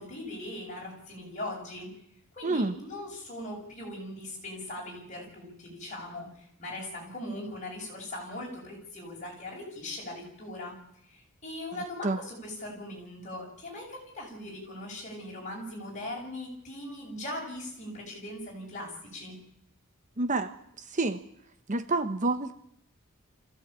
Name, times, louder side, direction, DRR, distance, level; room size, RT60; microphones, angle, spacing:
voice 1, 0.0-1.9 2.3-10.8 11.1-19.4, left 1 dB, 35° left, -2 dB, 7.5 m, -40 dB
voice 2, 2.4-2.7 12.0-12.2 20.2-20.5 20.9-21.2 21.7-22.5, right 2 dB, 35° right, 9 dB, 1.0 m, -28 dB
25.0 x 15.5 x 8.8 m, 0.75 s
head